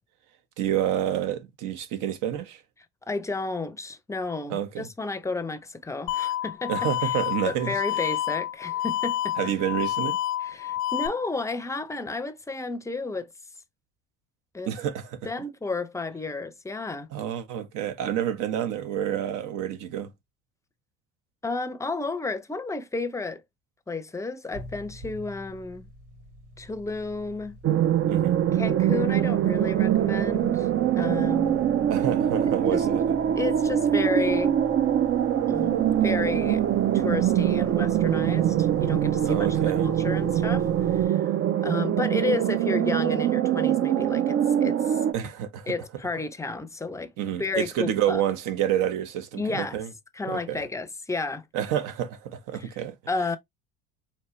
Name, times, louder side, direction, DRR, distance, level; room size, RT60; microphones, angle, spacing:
voice 1, 0.6-2.6 4.5-4.9 6.7-7.8 9.4-10.2 14.7-15.2 17.1-20.1 28.1-28.4 31.9-33.2 39.2-39.9 45.1-45.7 47.2-49.9 50.3-50.6 51.5-52.9, right 10 dB, 65° right, 1.2 m, -28 dB
voice 2, 3.1-7.2 7.5-9.4 10.4-13.3 14.5-14.7 15.2-17.1 21.4-23.4 23.9-25.9 26.6-27.6 28.6-30.7 31.0-31.6 32.7-32.9 33.4-34.6 35.5-36.6 36.9-39.5 39.8-41.3 41.6-45.0 45.7-47.1 47.4-48.2 49.3-49.8 50.1-51.4 52.6-52.7 53.1-53.4, left 3 dB, 10° left, 0.6 m, -32 dB
sound 1, 6.1-11.1, left 13 dB, 85° left, 0.8 m, -29 dB
sound 2, 24.5-41.1, equal, 85° right, 2.8 m, -43 dB
sound 3, 27.6-45.1, right 10 dB, 40° right, 0.5 m, -23 dB
4.3 x 2.9 x 3.1 m
supercardioid pair, 95°, 33 cm